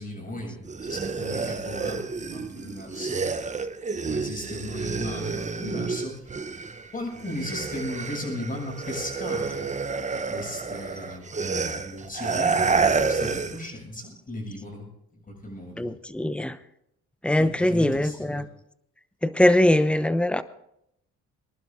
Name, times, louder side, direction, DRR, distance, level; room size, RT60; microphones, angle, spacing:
voice 1, 0.0-3.3 4.0-6.3 6.9-9.7 10.3-14.9 15.3-15.9 17.4-18.5, left 1 dB, 30° left, 1 dB, 7.2 m, -36 dB
sound 1, 0.7-6.9 7.2-13.7, right 4 dB, 25° right, 0.9 m, -29 dB
voice 2, 15.8-16.5 17.2-18.4 19.2-20.4, left 1 dB, 5° left, 12 dB, 0.9 m, -22 dB
24.0 x 11.5 x 3.7 m, 0.79 s
cardioid pair, 90°, 30 cm